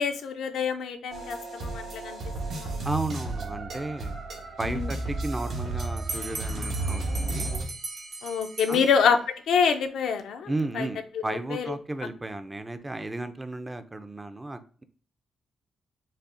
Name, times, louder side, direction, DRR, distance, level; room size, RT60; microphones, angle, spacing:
voice 1, 0.0-2.2 2.5-2.9 4.7-4.9 8.2-9.2 9.5-10.9 11.3-11.7, left 6 dB, 85° left, 6 dB, 0.5 m, -26 dB
sound 1, 1.1-7.6, right 2 dB, 75° right, 1.1 m, -33 dB
voice 2, 2.8-4.2 4.6-7.5 8.7-8.9 10.5-14.8, right 2 dB, 15° right, 9 dB, 0.4 m, -34 dB
Bell, 5.8-9.4, right 3 dB, 50° right, 0.7 m, -38 dB
5.4 x 2.0 x 2.5 m, 0.42 s
cardioid pair, 95°, 0 cm